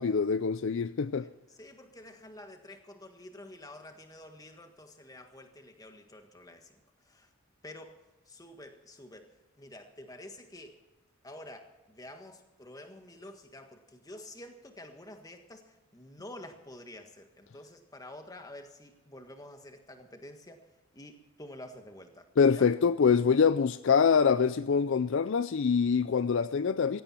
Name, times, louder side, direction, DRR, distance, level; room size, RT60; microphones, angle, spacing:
voice 1, 0.0-1.3 22.4-27.0, left 6 dB, 55° left, 0.4 m, -25 dB
voice 2, 1.1-7.3 7.6-10.8 11.2-22.7, left 1 dB, 15° left, 1.6 m, -49 dB
17.0 x 16.0 x 4.4 m
head